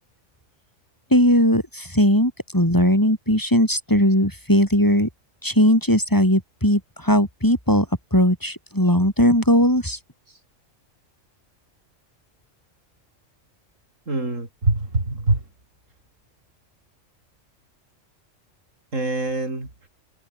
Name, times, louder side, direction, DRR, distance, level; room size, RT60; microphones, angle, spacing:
voice 1, 1.1-5.1 5.4-7.9 8.1-10.0, equal, 15° left, 7.8 m, -18 dB
voice 2, 14.1-15.4 18.9-19.7, right 2 dB, 75° right, 5.8 m, -24 dB
omnidirectional pair, 1.3 m